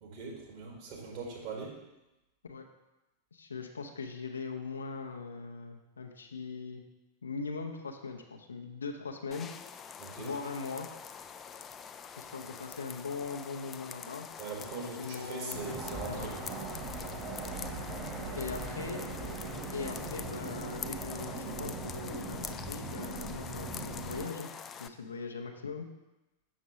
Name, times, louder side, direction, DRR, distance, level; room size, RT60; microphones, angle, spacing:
voice 1, 0.0-1.8 10.0-10.3 12.4-12.5 14.4-16.5, right 4 dB, 45° right, -1 dB, 1.9 m, -41 dB
voice 2, 3.3-6.8 7.2-9.5 10.2-10.9 12.2-14.3 14.6-15.8 16.1-16.3 18.4-19.0 19.7-24.5 24.8-25.9, left 4 dB, 75° left, 3 dB, 0.7 m, -40 dB
sound 1, 9.3-24.9, left 7 dB, 25° left, 0.3 m, -45 dB
sound 2, 15.5-24.3, right 2 dB, 25° right, 1.4 m, -40 dB
7.3 x 6.1 x 3.0 m, 1.0 s
figure-of-eight pair, 90°, 0 cm